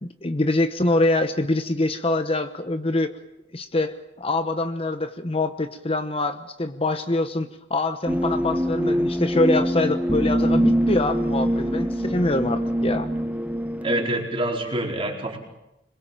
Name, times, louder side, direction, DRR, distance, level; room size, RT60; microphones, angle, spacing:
voice 1, 0.0-3.1 3.5-13.1, left 2 dB, 30° left, 9 dB, 1.0 m, -24 dB
sound 1, 8.1-14.2, equal, 10° right, 0.9 m, -24 dB
voice 2, 13.8-15.4, right 1 dB, 30° right, 0 dB, 4.7 m, -26 dB
26.0 x 21.5 x 7.5 m, 0.89 s
head